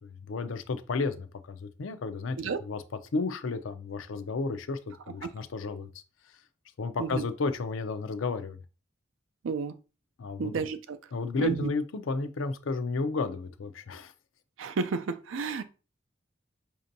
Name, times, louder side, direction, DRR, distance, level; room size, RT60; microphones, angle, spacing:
voice 1, 0.0-2.8 3.1-4.8 5.1-5.9 6.8-8.6 10.2-10.7 11.1-14.1, left 3 dB, 85° left, 0.5 m, -32 dB
voice 2, 9.4-9.8 10.4-11.0 11.4-11.7 14.6-15.6, right 5 dB, 85° right, 0.4 m, -31 dB
5.1 x 2.7 x 2.6 m
head